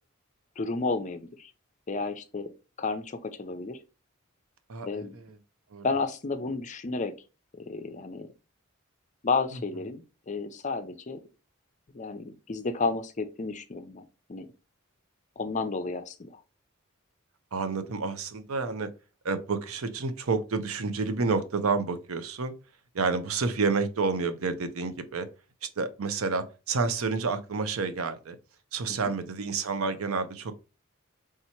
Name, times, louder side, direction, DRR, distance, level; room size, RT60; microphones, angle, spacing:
voice 1, 0.6-1.5 1.9-2.5 2.8-3.8 4.8-5.2 5.8-7.1 7.6-8.3 9.2-11.2 11.9-14.0 14.3-14.5 15.4-16.4 28.9-29.0, left 4 dB, 35° left, 0.5 m, -32 dB
voice 2, 4.7-5.2 5.7-5.8 17.5-18.9 19.2-22.5 22.9-25.3 25.8-28.4 28.7-30.5, right 4 dB, 85° right, 0.6 m, -29 dB
3.5 x 2.9 x 4.3 m
head